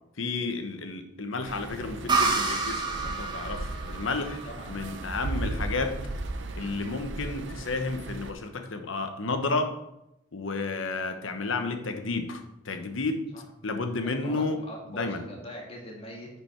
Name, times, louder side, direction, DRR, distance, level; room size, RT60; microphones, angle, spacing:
voice 1, 0.2-4.4 4.7-6.0 6.5-9.7 10.3-13.3 13.6-14.6 14.9-15.2, left 3 dB, 80° left, 7 dB, 1.0 m, -31 dB
sound 1, 1.4-8.3, right 2 dB, 65° right, 0.6 m, -37 dB
sound 2, 2.1-5.6, right 3 dB, 20° right, 1.0 m, -29 dB
voice 2, 4.5-4.8 13.3-13.4 14.2-16.3, equal, 30° left, -1 dB, 1.9 m, -42 dB
9.9 x 5.2 x 4.5 m, 0.87 s
head